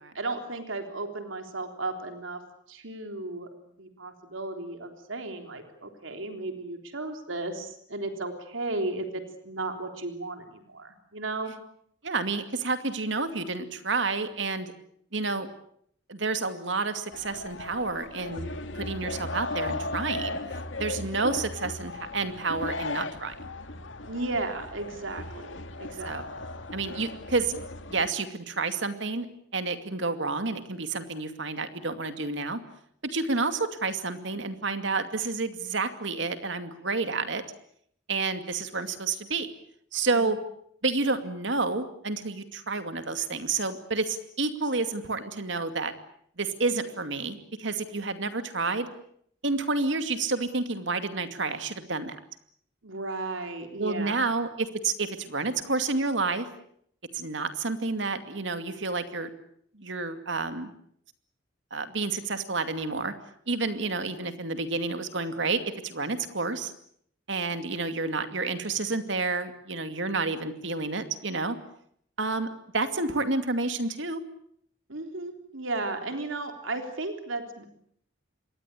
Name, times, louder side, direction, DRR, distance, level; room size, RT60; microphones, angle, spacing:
voice 1, 0.1-2.4 2.7-3.5 3.8-11.5 24.1-25.5 25.8-26.2 40.1-40.2 52.8-54.3 74.9-77.6, right 2 dB, 90° right, 6 dB, 3.6 m, -34 dB
voice 2, 12.0-14.7 15.1-15.5 16.1-18.5 18.7-20.4 20.8-23.3 26.1-26.3 26.7-27.6 27.9-29.3 29.5-32.6 33.1-37.4 38.1-39.5 39.9-40.4 40.8-45.9 46.4-48.9 49.4-52.2 53.8-56.5 57.1-59.3 59.7-60.7 61.7-63.1 63.5-66.7 67.3-71.6 72.2-72.5 72.7-74.2, right 3 dB, 70° right, 9 dB, 2.4 m, -29 dB
sound 1, 17.1-28.1, left 2 dB, 75° left, 2.2 m, -36 dB
27.0 x 22.0 x 8.5 m, 0.68 s
head